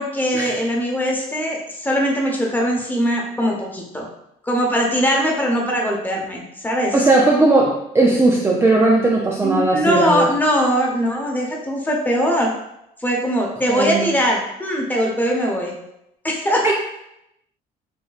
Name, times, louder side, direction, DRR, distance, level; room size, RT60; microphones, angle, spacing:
voice 1, 0.0-4.1 4.4-7.1 9.4-12.5 13.0-15.8 16.2-16.7, equal, 10° left, -1 dB, 1.0 m, -21 dB
voice 2, 6.9-10.3 13.7-14.1 16.6-16.7, right 2 dB, 15° right, -1 dB, 0.4 m, -17 dB
5.3 x 3.0 x 2.4 m, 0.82 s
cardioid pair, 110°, 17 cm